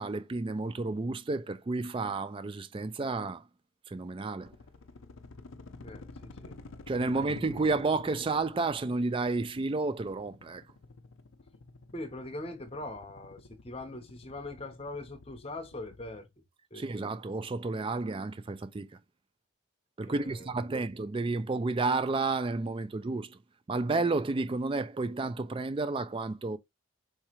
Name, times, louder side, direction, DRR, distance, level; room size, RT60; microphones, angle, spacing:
voice 1, 0.0-3.4 3.9-4.6 6.9-10.6 16.7-18.9 20.0-23.4 23.7-26.6, right 3 dB, 25° right, 0.3 m, -31 dB
sound 1, 4.4-16.2, left 3 dB, 70° left, 0.6 m, -50 dB
voice 2, 5.8-6.6 7.1-7.4 11.9-16.3 16.7-16.9 20.1-20.8, left 2 dB, 25° left, 1.0 m, -42 dB
4.8 x 3.2 x 3.0 m
head